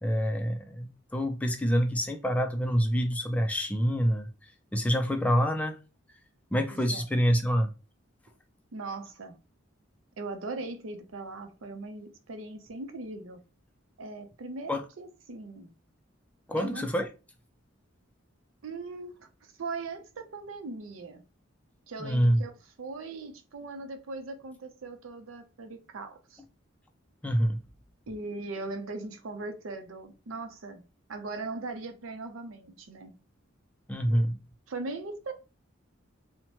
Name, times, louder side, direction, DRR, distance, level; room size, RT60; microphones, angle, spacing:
voice 1, 0.0-4.3 4.7-5.8 6.5-7.7 14.7-14.8 16.5-17.1 22.0-22.4 27.2-27.6 33.9-34.4, equal, 5° left, 0.3 m, -26 dB
voice 2, 6.7-7.0 8.7-9.4 10.2-13.4 14.0-15.7 16.6-16.8 18.6-19.1 19.6-21.2 21.9-22.5 22.8-26.4 28.1-30.8 31.1-33.1 34.1-34.4 34.7-35.3, right 3 dB, 85° right, 0.5 m, -39 dB
2.8 x 2.0 x 3.0 m
head